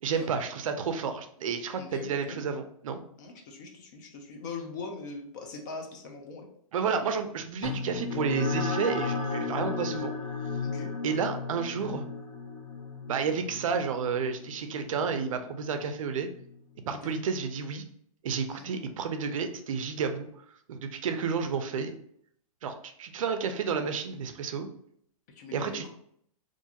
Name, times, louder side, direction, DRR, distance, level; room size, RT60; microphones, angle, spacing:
voice 1, 0.0-3.0 6.7-10.1 11.0-12.0 13.1-16.3 16.9-17.8 18.2-20.3 20.7-21.9 22.6-24.7 25.5-25.8, right 6 dB, 65° right, 7 dB, 0.4 m, -31 dB
voice 2, 1.8-2.5 3.2-6.5 10.6-10.9 16.9-17.2 18.5-18.7 25.4-25.9, left 4 dB, 30° left, 3 dB, 0.4 m, -41 dB
sound 1, 7.6-16.5, left 4 dB, 65° left, 1.0 m, -35 dB
2.5 x 2.3 x 2.7 m, 0.67 s
hypercardioid pair, 155°, 19 cm